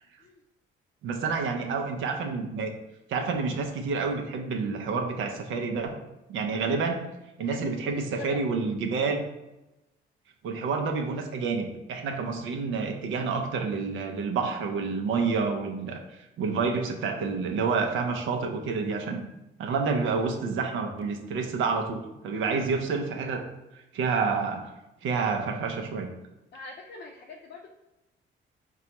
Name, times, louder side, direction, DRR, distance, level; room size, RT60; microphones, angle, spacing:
voice 1, 1.0-2.7 3.1-6.0 6.3-7.0 7.4-9.2 10.4-16.0 16.4-19.2 19.6-23.5 23.9-24.7 25.0-26.1, right 4 dB, 80° right, 3 dB, 0.5 m, -28 dB
voice 2, 7.4-8.5 26.5-27.7, left 4 dB, 55° left, 1 dB, 0.4 m, -43 dB
4.1 x 2.2 x 2.9 m, 0.96 s
cardioid pair, 90°, 20 cm